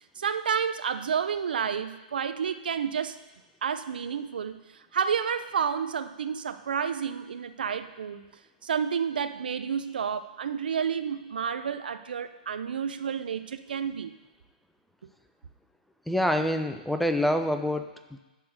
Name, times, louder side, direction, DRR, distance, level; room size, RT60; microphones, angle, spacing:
voice 1, 0.2-3.2 3.6-4.6 4.9-8.2 8.6-14.1, right 7 dB, 75° right, 11 dB, 0.6 m, -30 dB
voice 2, 16.1-18.2, left 1 dB, ahead, 7 dB, 0.5 m, -26 dB
11.0 x 3.8 x 6.4 m, 1.1 s
hypercardioid pair, 130°, 5 cm